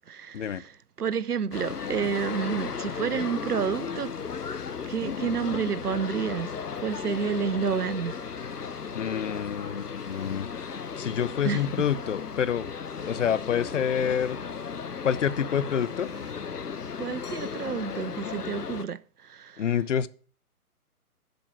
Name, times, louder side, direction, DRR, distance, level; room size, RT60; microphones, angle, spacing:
voice 1, 0.1-4.1 4.8-6.5 6.8-8.8 9.6-9.7 11.4-11.6 17.0-19.6, right 6 dB, 85° right, 0.6 m, -30 dB
sound 1, 1.5-18.8, left 6 dB, 85° left, 0.8 m, -35 dB
Drill, 6.9-7.5 9.9-10.6 13.0-13.6 16.0-16.6, right 4 dB, 10° right, 0.9 m, -56 dB
voice 2, 8.9-12.7 13.0-14.4 15.0-16.1 19.6-20.1, left 8 dB, 55° left, 0.6 m, -28 dB
7.8 x 6.4 x 5.8 m
figure-of-eight pair, 135°, 45 cm